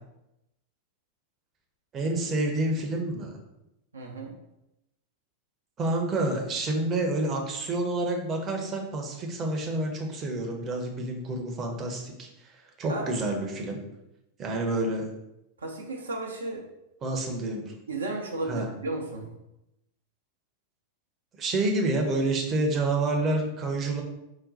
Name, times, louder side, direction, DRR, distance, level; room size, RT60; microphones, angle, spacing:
voice 1, 1.9-3.4 5.8-13.8 14.4-15.1 17.0-17.7 18.5-18.7 21.4-24.0, right 2 dB, 25° right, 2 dB, 0.7 m, -28 dB
voice 2, 3.9-4.3 12.9-13.2 15.6-16.6 17.9-19.3, right 2 dB, 75° right, 1 dB, 0.5 m, -34 dB
4.0 x 2.2 x 3.9 m, 0.88 s
figure-of-eight pair, 90°, 0 cm